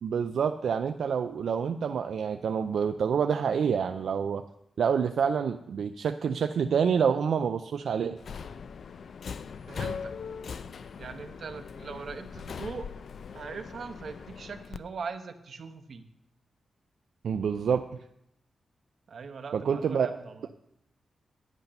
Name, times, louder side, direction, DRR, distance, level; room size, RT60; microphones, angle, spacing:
voice 1, 0.0-4.4 4.8-8.2 17.2-17.8 19.5-20.1, right 7 dB, 80° right, 7 dB, 0.4 m, -27 dB
Subway metro underground, 8.2-14.8, left 6 dB, 65° left, 0.4 m, -40 dB
voice 2, 9.7-10.1 11.0-12.9 13.3-16.1 19.1-20.5, right 5 dB, 60° right, 7 dB, 0.9 m, -41 dB
10.5 x 8.2 x 5.3 m, 0.80 s
wide cardioid pair, 135°, 0 cm